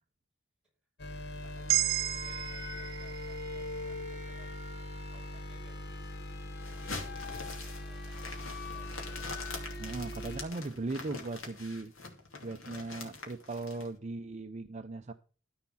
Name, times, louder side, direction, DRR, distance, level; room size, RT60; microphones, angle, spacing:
sound 1, 1.0-10.4, left 2 dB, 60° left, 1.3 m, -41 dB
voice 1, 1.1-9.0, equal, 5° right, -3 dB, 5.8 m, -60 dB
sound 2, 1.7-5.9, right 14 dB, 80° right, 0.5 m, -35 dB
sound 3, 6.6-13.9, left 3 dB, 85° left, 2.6 m, -44 dB
voice 2, 9.8-11.9 12.4-15.1, right 3 dB, 35° right, 8 dB, 0.6 m, -38 dB
13.5 x 4.7 x 5.6 m, 0.38 s
head